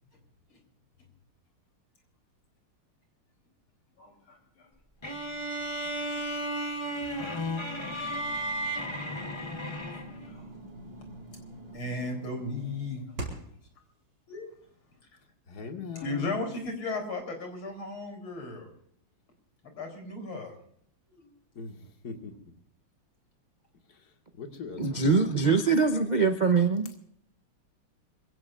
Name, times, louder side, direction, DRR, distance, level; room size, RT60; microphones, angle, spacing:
voice 1, 4.0-4.7 6.1-6.5 10.2-10.5 11.7-13.3 14.3-14.5 15.9-18.7 19.6-20.5 21.1-21.3, left 2 dB, 65° left, 3 dB, 4.8 m, -36 dB
sound 1, 5.0-10.3, equal, 15° left, 1.0 m, -34 dB
sound 2, 7.0-13.6, right 1 dB, 45° right, 5.3 m, -45 dB
voice 2, 15.5-16.4 21.6-22.3 23.9-24.0 24.4-25.4, left 5 dB, 45° left, 3 dB, 2.4 m, -41 dB
voice 3, 24.8-26.9, right 4 dB, 60° right, 6 dB, 0.4 m, -23 dB
26.0 x 16.5 x 2.6 m, 0.68 s
omnidirectional pair, 2.4 m